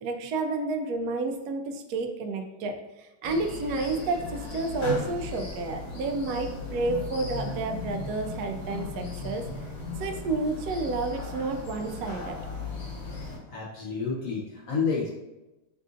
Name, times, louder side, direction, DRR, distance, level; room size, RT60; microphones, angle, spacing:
voice 1, 0.0-9.5 10.0-12.4, right 3 dB, 80° right, 4 dB, 0.8 m, -30 dB
sound 1, 3.2-13.4, left 3 dB, 65° left, 1.5 m, -37 dB
voice 2, 13.5-15.1, left 5 dB, 85° left, -4 dB, 0.7 m, -29 dB
6.4 x 2.4 x 2.6 m, 1.0 s
omnidirectional pair, 2.2 m